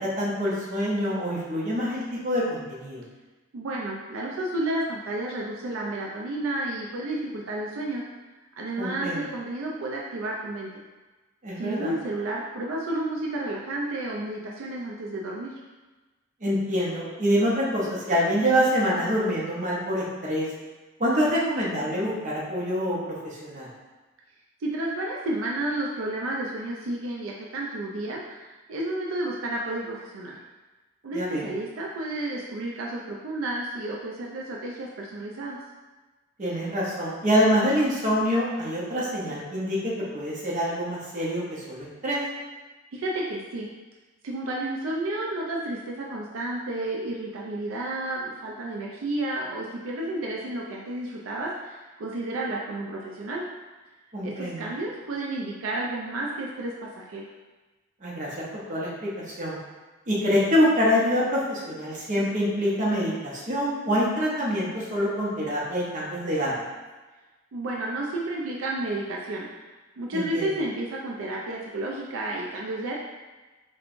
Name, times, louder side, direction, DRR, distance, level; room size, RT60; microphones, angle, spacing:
voice 1, 0.0-3.0 8.8-9.2 11.4-11.9 16.4-20.5 21.0-23.7 31.1-31.5 36.4-42.2 54.1-54.7 58.0-59.6 60.1-66.6 70.1-70.5, equal, 40° right, -5 dB, 0.8 m, -26 dB
voice 2, 3.5-8.0 8.6-10.7 11.6-15.5 24.6-30.4 31.0-35.6 42.9-43.7 44.2-53.4 54.2-57.3 67.5-69.5 70.0-72.9, right 1 dB, 80° right, -2 dB, 0.4 m, -31 dB
4.4 x 2.2 x 2.5 m, 1.2 s
head